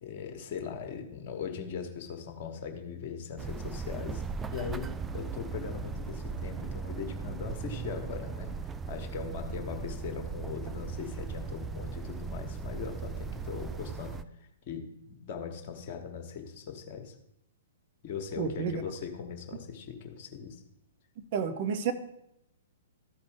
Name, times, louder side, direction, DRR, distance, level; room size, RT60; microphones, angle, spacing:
voice 1, 0.0-8.5 8.9-14.2 14.7-17.1 18.0-20.6, left 6 dB, 40° left, 4 dB, 1.4 m, -40 dB
sound 1, 3.4-14.2, right 5 dB, 15° right, 0.3 m, -38 dB
voice 2, 18.4-18.8 21.3-21.9, right 6 dB, 40° right, 8 dB, 0.8 m, -30 dB
13.5 x 5.1 x 3.6 m, 0.79 s
figure-of-eight pair, 115°, 0 cm